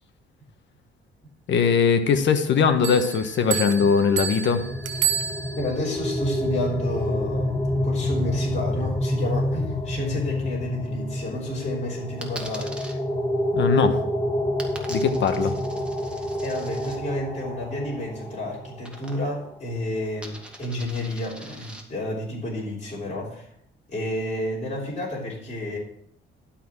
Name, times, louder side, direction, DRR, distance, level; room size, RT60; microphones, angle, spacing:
voice 1, 1.5-4.6 13.5-14.0 14.9-15.5, left 6 dB, 65° left, 8 dB, 1.3 m, -20 dB
Bell, 2.8-5.9, right 9 dB, 70° right, 0.9 m, -29 dB
sound 1, 4.4-18.9, left 1 dB, 20° left, 1.8 m, -28 dB
voice 2, 5.5-12.8 16.4-23.5 23.9-25.8, left 1 dB, 35° left, -5 dB, 3.4 m, -31 dB
Coin (dropping), 12.2-12.9 14.6-17.0 18.8-19.5 19.7-21.8, right 1 dB, 5° right, 1.9 m, -42 dB
12.0 x 4.4 x 7.3 m, 0.71 s
cardioid pair, 90°, 20 cm